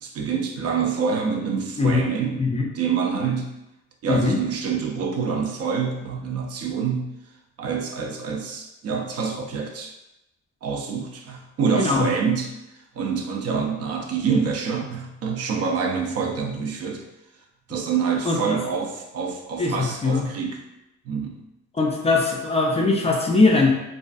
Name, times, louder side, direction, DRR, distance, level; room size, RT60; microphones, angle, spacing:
voice 1, 0.0-2.4 2.7-3.5 4.0-7.1 7.6-9.9 10.6-12.5 13.0-17.0 17.7-20.6 21.1-21.4, right 6 dB, 55° right, 2 dB, 0.4 m, -26 dB
voice 2, 4.1-4.4 11.8-12.1 18.3-18.6 19.6-20.3 21.8-23.7, left 3 dB, 20° left, -1 dB, 0.3 m, -21 dB
2.4 x 2.3 x 2.4 m, 0.91 s
cardioid pair, 90°, 30 cm